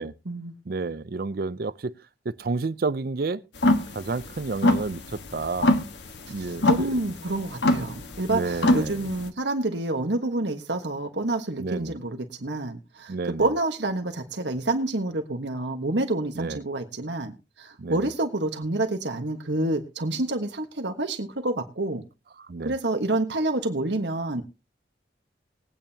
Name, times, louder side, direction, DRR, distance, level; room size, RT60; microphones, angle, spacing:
voice 1, 0.0-0.5 6.4-22.0 22.6-24.4, right 2 dB, 70° right, 1.3 m, -28 dB
voice 2, 0.7-1.9 2.3-3.4 3.9-5.7 6.3-6.9 8.3-9.1 11.6-12.0 13.1-13.5 16.4-16.6 17.8-18.1 22.4-22.7, right 3 dB, 55° right, 0.5 m, -30 dB
sound 1, 3.6-9.3, left 1 dB, 75° left, 1.4 m, -24 dB
21.0 x 8.9 x 2.8 m
head